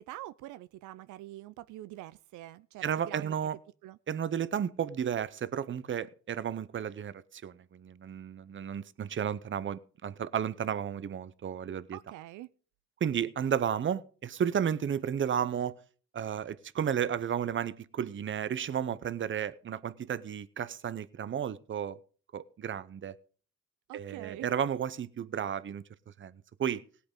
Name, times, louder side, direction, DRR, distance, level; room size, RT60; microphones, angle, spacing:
voice 1, 0.0-3.3 3.8-4.0 11.9-12.5 23.9-24.5, right 15 dB, 85° right, 0.5 m, -45 dB
voice 2, 2.8-3.6 4.1-12.0 13.0-15.8 16.1-22.0 22.3-23.2 23.9-25.8 26.2-26.8, right 8 dB, 40° right, 0.8 m, -33 dB
18.0 x 8.4 x 3.7 m
cardioid pair, 90°, 30 cm